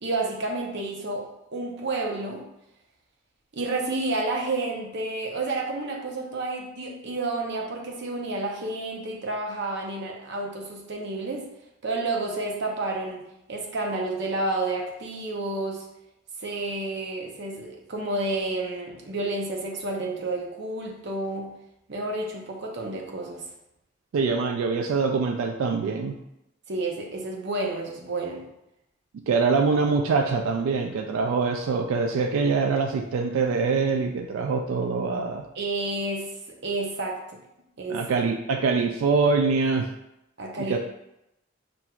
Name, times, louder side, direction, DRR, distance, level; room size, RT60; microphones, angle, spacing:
voice 1, 0.0-1.2 1.5-2.4 3.5-11.5 11.8-13.2 13.5-15.9 16.4-21.5 21.9-23.5 26.7-28.5 35.5-36.3 36.6-37.2 37.8-38.0 40.4-40.8, right 2 dB, 60° right, 0 dB, 0.7 m, -30 dB
voice 2, 24.1-26.1 29.3-35.4 37.9-39.9 40.6-40.8, right 4 dB, 85° right, 4 dB, 0.3 m, -24 dB
5.8 x 2.6 x 2.3 m, 0.87 s
head